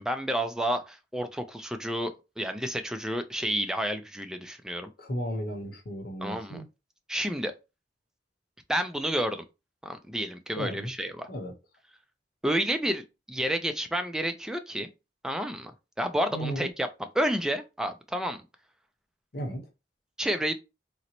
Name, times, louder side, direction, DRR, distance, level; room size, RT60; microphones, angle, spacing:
voice 1, 0.0-4.9 6.2-6.6 7.1-7.5 8.7-9.4 9.8-11.3 12.4-14.9 15.2-15.7 16.0-16.9 17.2-18.4 20.2-20.5, equal, 5° right, 0.3 m, -30 dB
voice 2, 5.0-6.7 10.5-10.9 11.3-11.5 16.3-16.7 19.3-19.7, equal, 60° left, 0.8 m, -34 dB
3.8 x 2.0 x 2.9 m
head